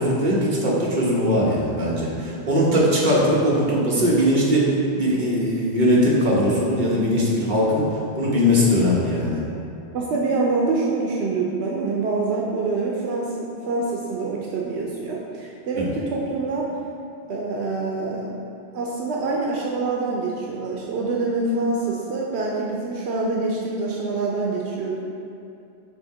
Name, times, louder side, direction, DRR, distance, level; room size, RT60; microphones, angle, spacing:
voice 1, 0.0-9.4 15.7-15.9, equal, 50° right, -5 dB, 1.3 m, -20 dB
voice 2, 9.9-16.7 17.3-18.3 18.7-25.0, right 3 dB, 80° right, -3 dB, 0.9 m, -25 dB
7.1 x 2.8 x 4.7 m, 2.7 s
omnidirectional pair, 1.1 m